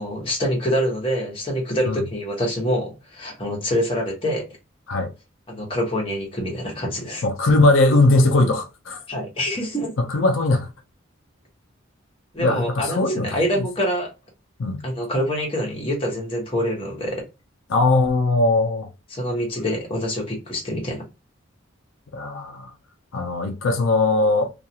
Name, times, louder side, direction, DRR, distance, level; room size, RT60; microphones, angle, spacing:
voice 1, 0.0-4.4 5.5-7.2 9.1-9.9 12.3-14.1 14.8-17.2 19.1-21.0, equal, 25° left, 1.0 m, -25 dB
voice 2, 7.2-9.0 10.0-10.7 12.4-13.4 14.6-14.8 17.7-18.9 22.1-22.7 23.1-24.5, left 2 dB, 80° left, 0.5 m, -19 dB
2.4 x 2.3 x 2.8 m
head